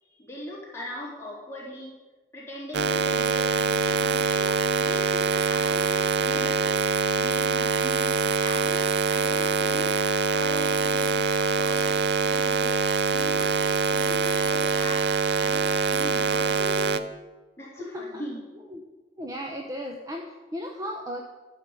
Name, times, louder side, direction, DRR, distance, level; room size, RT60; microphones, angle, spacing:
voice 1, 0.0-1.9 2.3-6.8 7.2-9.9 10.3-17.0 17.6-18.4, left 1 dB, 15° left, -7 dB, 3.9 m, -40 dB
sound 1, 2.7-17.0, right 4 dB, 60° right, 0.6 m, -24 dB
voice 2, 17.8-18.2 18.7-18.8 19.2-21.2, equal, 20° right, 1 dB, 0.8 m, -35 dB
12.5 x 5.5 x 8.9 m, 1.2 s
head